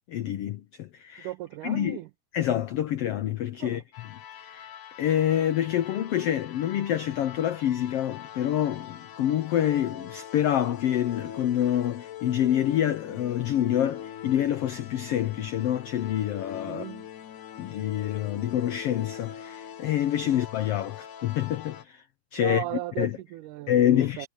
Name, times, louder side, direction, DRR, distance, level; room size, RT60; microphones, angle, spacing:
voice 1, 0.1-1.3 1.6-2.0 2.3-3.8 4.4-4.7 5.0-16.8 17.6-22.0 22.3-22.6 23.0-23.1 23.7-24.3, left 11 dB, 90° left, 1.3 m, -27 dB
voice 2, 1.2-2.1 3.6-3.8 16.6-17.1 20.2-20.3 22.4-24.3, right 16 dB, 80° right, 2.1 m, -36 dB
sound 1, 3.9-21.8, left 10 dB, 70° left, 2.8 m, -42 dB
omnidirectional pair, 3.8 m